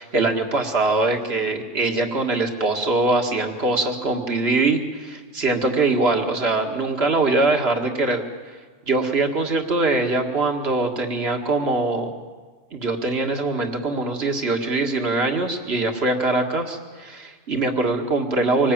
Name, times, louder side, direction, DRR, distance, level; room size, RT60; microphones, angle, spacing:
voice 1, 0.0-8.2 8.9-12.1 12.7-18.7, right 2 dB, 60° right, 4 dB, 2.2 m, -22 dB
25.5 x 19.5 x 8.9 m, 1.4 s
omnidirectional pair, 1.2 m